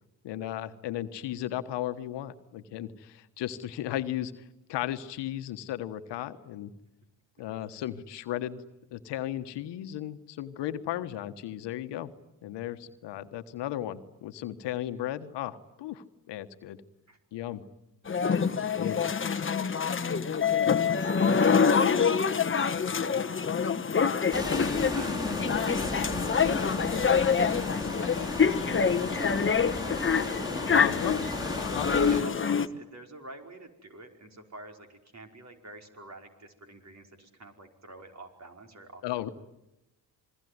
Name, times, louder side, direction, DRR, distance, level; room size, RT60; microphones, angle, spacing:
voice 1, 0.2-4.3 4.7-6.7 7.4-8.6 8.9-12.1 12.4-16.8 17.3-17.6 18.7-19.0 30.7-31.1 31.6-31.9 39.0-39.3, left 13 dB, 75° left, 11 dB, 1.4 m, -35 dB
sound 1, 18.1-32.7, left 6 dB, 30° left, 1.3 m, -26 dB
voice 2, 18.5-19.3 19.6-20.4 21.0-22.7 23.2-23.7 24.9-25.4 25.8-30.4 31.0-31.2 31.5-39.3, right 2 dB, 40° right, 4 dB, 5.3 m, -49 dB
sound 2, 24.3-32.2, left 1 dB, 10° right, 5.9 m, -35 dB
27.5 x 21.5 x 9.6 m, 0.90 s
supercardioid pair, 60°, 42 cm